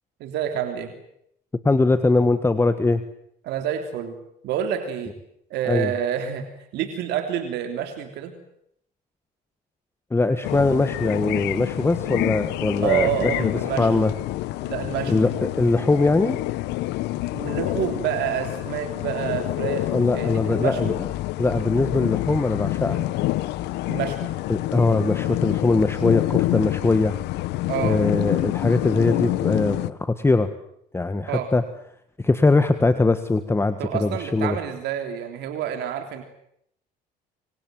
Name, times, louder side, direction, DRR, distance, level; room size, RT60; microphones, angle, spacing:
voice 1, 0.2-0.9 3.4-4.1 4.4-5.1 5.5-6.4 6.7-8.3 12.8-14.0 14.7-15.3 17.3-20.9 23.9-24.3 27.7-28.0 31.3-31.5 33.8-36.2, right 9 dB, 80° right, 6 dB, 3.3 m, -28 dB
voice 2, 1.6-3.0 5.7-5.9 10.1-13.5 13.8-14.1 15.1-16.4 19.9-21.1 21.4-23.0 24.5-27.2 27.8-30.5 30.9-31.6 32.2-34.6, left 3 dB, 15° left, 10 dB, 1.6 m, -21 dB
sound 1, 10.4-29.9, left 17 dB, 90° left, 1.1 m, -27 dB
26.5 x 25.5 x 7.8 m, 0.73 s
cardioid pair, 110°, 17 cm